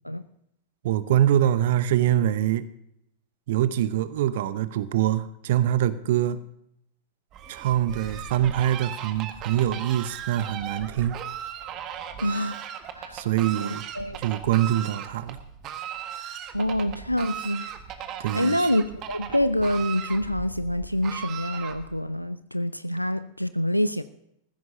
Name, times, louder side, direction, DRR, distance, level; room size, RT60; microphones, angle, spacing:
voice 1, 0.8-2.7 3.5-6.4 7.5-11.2 13.1-13.8 14.2-15.4 18.2-18.7, right 12 dB, 55° right, 0.7 m, -24 dB
Fowl, 7.3-22.1, right 9 dB, 35° right, 1.6 m, -37 dB
voice 2, 12.2-12.6 12.9-13.3 13.6-14.2 16.5-17.7 18.3-24.0, equal, 90° left, 0.5 m, -26 dB
20.0 x 15.5 x 2.8 m
figure-of-eight pair, 90°, 0 cm